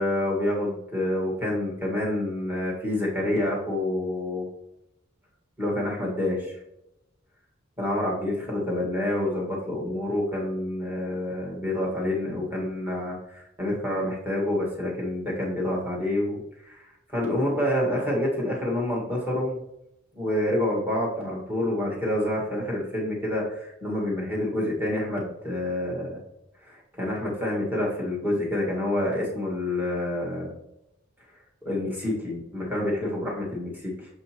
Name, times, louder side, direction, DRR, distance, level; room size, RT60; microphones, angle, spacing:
voice 1, 0.0-4.5 5.6-6.6 7.8-16.8 17.1-19.6 20.2-26.2 26.6-30.5 31.6-34.1, left 1 dB, 10° right, -4 dB, 1.7 m, -28 dB
7.0 x 5.2 x 3.0 m, 0.84 s
head